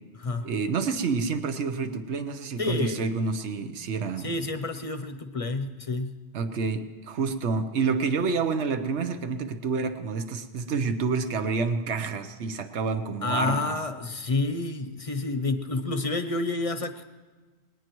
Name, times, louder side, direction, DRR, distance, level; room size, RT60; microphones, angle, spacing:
voice 1, 0.4-4.3 6.3-13.7, right 4 dB, 75° right, 9 dB, 1.2 m, -28 dB
voice 2, 2.6-3.0 4.2-6.2 13.2-17.0, left 3 dB, 35° left, 8 dB, 0.8 m, -29 dB
20.5 x 18.5 x 3.1 m, 1.4 s
omnidirectional pair, 1.2 m